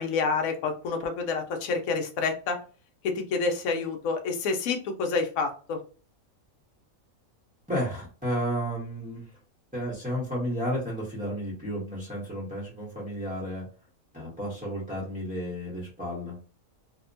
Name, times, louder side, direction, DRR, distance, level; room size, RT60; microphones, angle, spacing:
voice 1, 0.0-2.6 3.0-5.8, left 4 dB, 80° left, 4 dB, 1.0 m, -28 dB
voice 2, 7.7-9.3 9.7-13.7 14.1-16.4, equal, 5° right, -7 dB, 0.7 m, -32 dB
2.7 x 2.1 x 2.5 m, 0.37 s
omnidirectional pair, 1.4 m